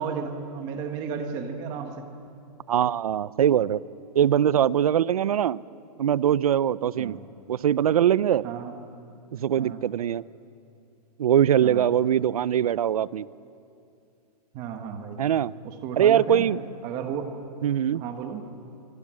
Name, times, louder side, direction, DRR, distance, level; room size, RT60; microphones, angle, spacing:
voice 1, 0.0-2.1 7.0-7.2 8.4-8.8 9.6-9.8 11.6-11.9 14.5-15.2 15.6-16.5 16.8-17.3 17.9-18.4, right 6 dB, 20° right, 6 dB, 1.3 m, -33 dB
voice 2, 2.7-3.8 4.1-5.6 6.0-7.2 7.5-8.4 9.3-10.2 11.2-13.3 15.2-15.5 16.0-16.6 17.6-18.0, right 10 dB, 60° right, 20 dB, 0.6 m, -22 dB
26.5 x 24.5 x 7.6 m, 2.6 s
hypercardioid pair, 180°, 21 cm